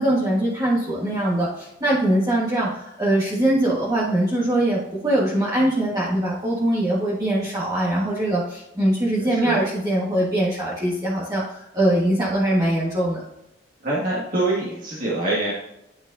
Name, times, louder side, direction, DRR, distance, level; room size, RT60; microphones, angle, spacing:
voice 1, 0.0-13.2, right 1 dB, 20° right, -7 dB, 1.5 m, -22 dB
voice 2, 9.2-9.6 13.8-15.5, right 2 dB, 50° right, -7 dB, 1.9 m, -25 dB
10.0 x 6.1 x 2.7 m, 0.87 s
head